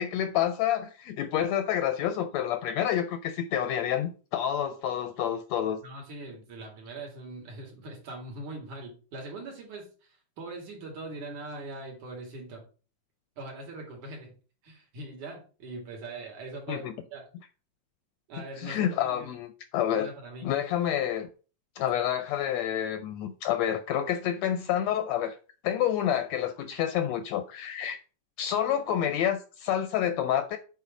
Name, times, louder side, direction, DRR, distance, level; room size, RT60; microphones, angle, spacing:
voice 1, 0.0-5.8 16.7-16.9 18.4-20.1 20.4-21.3 21.8-25.4 25.6-28.0 28.4-30.6, left 10 dB, 80° left, 1.6 m, -28 dB
voice 2, 5.8-12.6 13.4-14.3 14.6-17.2 18.3-19.3 19.9-20.5, right 2 dB, 70° right, 3.9 m, -41 dB
8.3 x 4.1 x 5.9 m
omnidirectional pair, 3.6 m